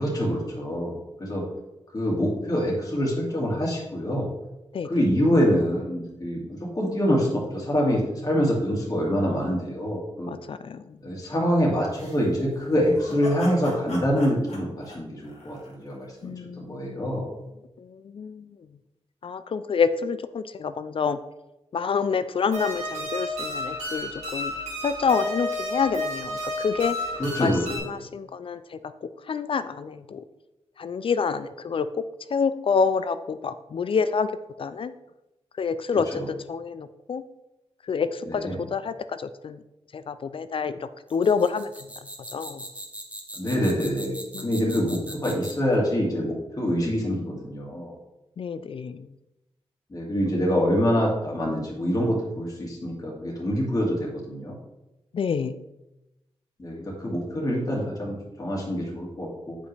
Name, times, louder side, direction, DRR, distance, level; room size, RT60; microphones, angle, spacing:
voice 1, 0.0-1.4 1.9-4.3 4.8-10.3 11.0-17.3 27.2-27.9 36.1-36.3 38.3-38.6 43.4-48.0 49.9-54.6 56.6-59.6, equal, 35° left, -3 dB, 2.0 m, -25 dB
voice 2, 4.7-5.0 10.3-11.0 16.2-17.1 17.8-18.6 19.2-21.2 21.7-24.5 24.8-27.0 27.4-30.2 30.8-32.0 32.3-34.3 34.6-34.9 35.6-37.2 37.9-39.6 39.9-41.7 42.3-42.7 44.3-45.0 48.4-49.1 55.1-55.6, left 5 dB, 55° left, 12 dB, 0.4 m, -28 dB
sound 1, 11.9-16.1, equal, 80° left, 1.9 m, -40 dB
sound 2, 22.5-27.8, left 1 dB, 90° right, 2.4 m, -31 dB
sound 3, 41.1-45.7, right 1 dB, 10° right, 1.2 m, -40 dB
7.7 x 5.1 x 3.3 m, 0.96 s
cardioid pair, 75°, 11 cm